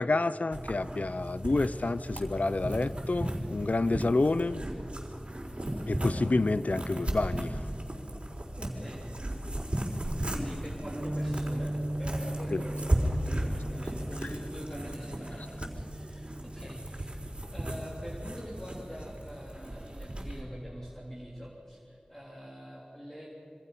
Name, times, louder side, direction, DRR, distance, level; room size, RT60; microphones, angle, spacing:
voice 1, 0.0-4.6 5.9-7.6 12.5-12.6, left 2 dB, 75° left, 15 dB, 0.6 m, -28 dB
sound 1, 0.5-20.4, right 1 dB, 45° right, 4.0 m, -35 dB
voice 2, 8.6-9.1 9.6-9.7 10.3-17.2 17.5-23.3, equal, 15° left, -4 dB, 3.7 m, -44 dB
Bass guitar, 10.9-17.2, right 1 dB, 25° right, 3.8 m, -38 dB
27.0 x 25.0 x 5.6 m, 2.5 s
wide cardioid pair, 50°, 3 cm